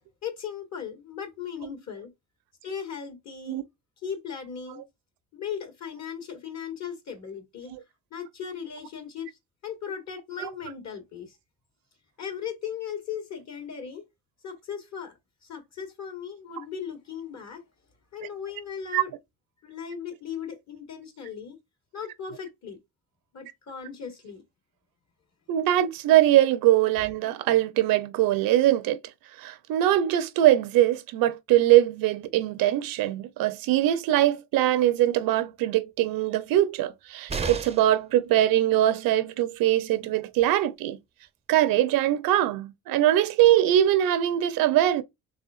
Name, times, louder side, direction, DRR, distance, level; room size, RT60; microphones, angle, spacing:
voice 1, 0.2-2.1 2.6-3.6 4.0-4.8 5.3-7.7 8.1-9.3 9.6-11.4 12.2-14.1 14.4-17.6 18.1-19.1 19.6-21.6 21.9-22.8 23.3-24.4, left 7 dB, 50° left, 1.9 m, -37 dB
voice 2, 25.5-29.0 29.4-41.0 41.5-45.0, right 13 dB, 80° right, 0.8 m, -22 dB
sound 1, 37.3-38.0 40.0-40.1 40.4-40.5, right 5 dB, 20° right, 0.6 m, -32 dB
4.1 x 3.5 x 2.4 m
cardioid pair, 80°, 34 cm